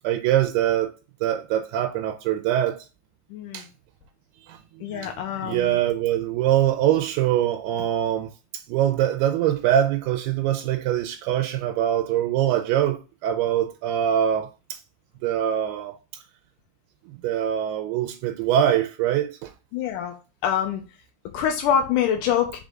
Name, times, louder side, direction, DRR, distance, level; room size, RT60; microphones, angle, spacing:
voice 1, 0.0-0.9 1.2-2.9 3.5-3.7 4.4-5.1 5.4-14.8 15.2-16.2 17.1-19.5, right 11 dB, 85° right, 2.5 m, -23 dB
voice 2, 3.3-3.7 4.8-5.7 19.7-20.2 20.4-20.8 21.3-22.5, left 8 dB, 85° left, 1.8 m, -25 dB
5.3 x 5.2 x 3.7 m
omnidirectional pair, 4.6 m